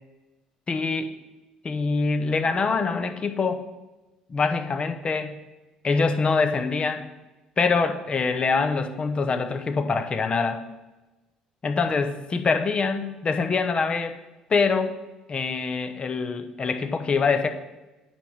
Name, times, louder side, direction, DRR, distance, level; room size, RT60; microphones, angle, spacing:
voice 1, 0.7-1.1 1.6-3.6 4.3-5.4 5.8-7.1 7.6-10.6 11.6-14.2 14.5-14.9 15.3-17.5, left 4 dB, 35° left, 7 dB, 0.9 m, -24 dB
8.9 x 3.6 x 5.6 m, 1.1 s
hypercardioid pair, 60°, 3 cm